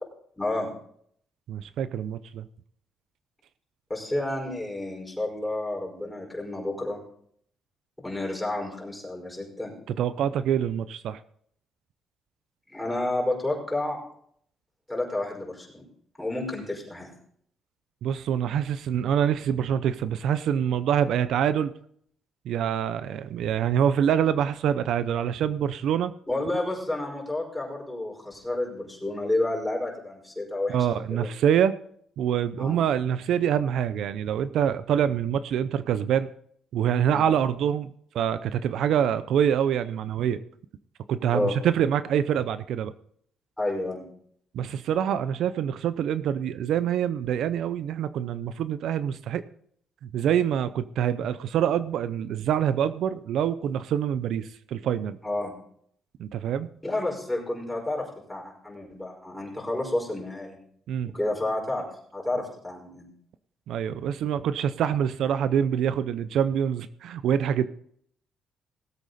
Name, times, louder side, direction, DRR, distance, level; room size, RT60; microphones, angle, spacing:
voice 1, 0.4-0.7 3.9-7.0 8.0-9.7 12.7-14.0 14.9-15.8 16.2-17.1 26.3-31.3 32.6-32.8 37.0-37.3 38.8-39.0 41.3-41.6 43.6-44.1 55.2-55.5 56.8-60.6 61.1-61.9 62.1-63.1, left 2 dB, 5° left, -2 dB, 5.3 m, -30 dB
voice 2, 1.5-2.5 10.0-11.2 18.0-21.7 22.5-26.1 30.7-31.8 32.2-36.3 36.7-40.4 41.1-42.9 44.5-49.4 50.0-55.2 56.2-56.7 60.9-61.1 63.7-67.7, right 9 dB, 80° right, 14 dB, 0.6 m, -25 dB
18.0 x 8.2 x 4.1 m, 0.64 s
cardioid pair, 90°, 0 cm